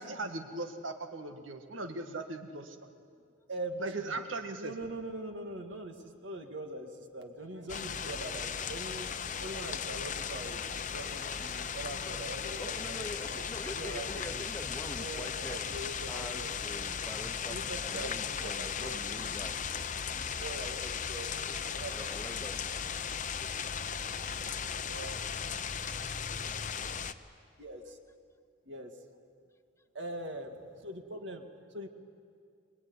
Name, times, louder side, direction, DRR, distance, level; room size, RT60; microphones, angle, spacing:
voice 1, 0.0-2.8 3.8-4.7, right 2 dB, 85° right, 7 dB, 1.8 m, -38 dB
voice 2, 3.5-4.2 4.6-9.1 9.4-14.5 14.9-16.5 17.5-18.1 18.4-19.5 20.1-21.4 21.7-22.1 24.9-25.2 27.6-28.0 28.7-28.9 29.9-31.5 31.7-31.9, right 1 dB, 65° right, 5 dB, 2.2 m, -42 dB
sound 1, 7.7-27.1, left 7 dB, 40° left, 0.8 m, -37 dB
voice 3, 12.6-15.7 16.1-19.6 21.4-21.6 21.9-23.1, left 1 dB, 15° left, 10 dB, 0.9 m, -45 dB
25.5 x 21.0 x 9.7 m, 2.3 s
head